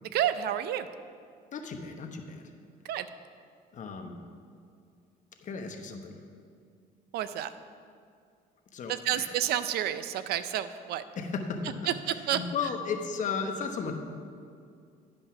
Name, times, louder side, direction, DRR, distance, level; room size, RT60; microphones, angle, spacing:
voice 1, 0.0-0.9 2.8-3.1 7.1-7.5 8.9-11.0 11.9-12.4, right 11 dB, 70° right, 13 dB, 0.5 m, -30 dB
voice 2, 1.5-2.5 3.7-4.2 5.4-6.2 8.7-9.3 11.2-11.9 12.3-13.9, left 5 dB, 50° left, 4 dB, 1.0 m, -35 dB
11.0 x 5.4 x 5.9 m, 2.3 s
cardioid pair, 110°, 17 cm